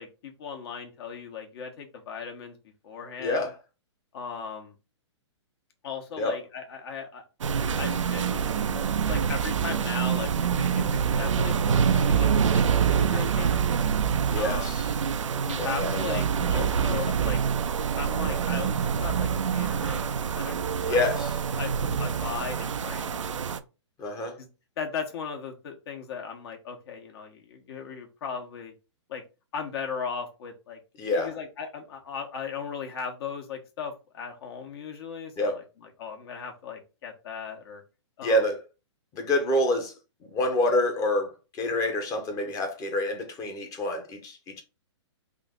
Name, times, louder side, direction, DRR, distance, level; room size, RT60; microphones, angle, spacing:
voice 1, 0.0-2.6 2.8-3.5 4.1-4.7 5.8-7.2 7.8-11.6 11.9-13.6 14.3-14.8 15.4-17.4 17.8-20.6 20.9-21.0 21.6-23.2 24.4-24.5 24.8-28.7 29.1-29.2 29.5-30.8 31.2-35.6 36.0-37.8 38.2-38.4, left 6 dB, 55° left, 1.3 m, -37 dB
voice 2, 3.2-3.5 6.2-6.4 14.3-14.9 15.6-16.6 20.8-21.4 24.0-24.4 31.0-31.3 35.4-35.6 38.2-38.6 39.1-39.9 40.2-44.6, left 1 dB, 25° left, 0.9 m, -27 dB
sound 1, 7.4-23.6, right 7 dB, 85° right, 0.5 m, -26 dB
3.6 x 2.7 x 3.7 m
hypercardioid pair, 130°, 16 cm